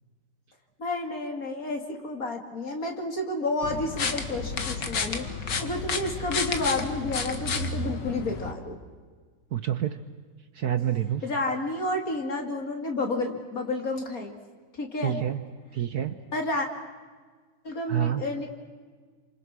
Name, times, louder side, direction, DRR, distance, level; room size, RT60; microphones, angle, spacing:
voice 1, 0.8-8.8 11.2-14.4 14.8-15.2 16.3-16.7 17.6-18.5, left 2 dB, 45° left, 3 dB, 3.1 m, -30 dB
sound 1, 3.6-8.5, left 4 dB, 65° left, 2.3 m, -31 dB
voice 2, 9.5-10.0 10.6-11.2 15.0-15.4 15.7-16.1 17.9-18.2, right 11 dB, 60° right, 10 dB, 1.3 m, -27 dB
29.0 x 26.0 x 6.2 m, 1.5 s
omnidirectional pair, 2.1 m